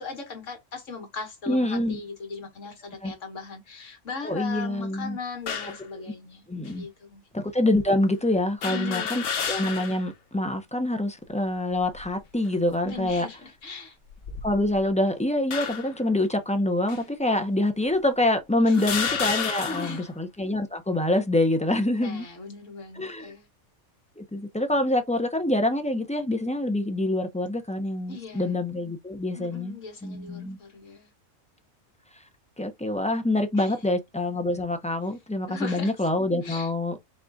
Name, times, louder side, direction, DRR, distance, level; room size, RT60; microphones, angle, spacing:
voice 1, 0.0-7.2 8.7-9.2 12.8-14.0 18.6-18.9 19.4-20.1 21.9-23.5 28.1-28.6 29.4-31.1 33.6-33.7 35.5-35.9 36.4-36.7, left 4 dB, 70° left, 1.8 m, -38 dB
voice 2, 1.5-2.0 3.0-3.1 4.2-5.2 5.9-6.1 6.5-6.9 7.3-13.3 14.4-22.3 22.9-23.3 24.2-30.6 32.6-37.0, left 1 dB, 10° left, 0.4 m, -26 dB
sound 1, 5.5-5.8 6.7-6.8 8.6-10.1 10.5-10.6 11.7-12.2 12.9-13.1 14.1-14.9 15.5-16.0 16.9-17.0 17.9-18.0 18.7-20.1, left 6 dB, 50° left, 0.9 m, -31 dB
5.2 x 2.4 x 3.9 m
omnidirectional pair, 1.4 m